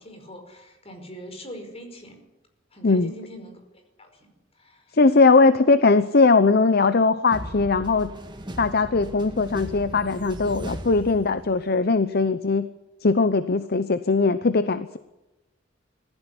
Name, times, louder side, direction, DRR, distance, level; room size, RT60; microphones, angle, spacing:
voice 1, 0.0-2.2 2.7-5.0, equal, 30° left, 5 dB, 5.1 m, -43 dB
voice 2, 4.9-8.1 8.6-12.7 13.0-15.0, left 3 dB, 55° left, 13 dB, 0.8 m, -20 dB
sound 1, 7.3-11.8, equal, 25° right, 2.1 m, -38 dB
20.5 x 15.5 x 9.8 m, 0.99 s
head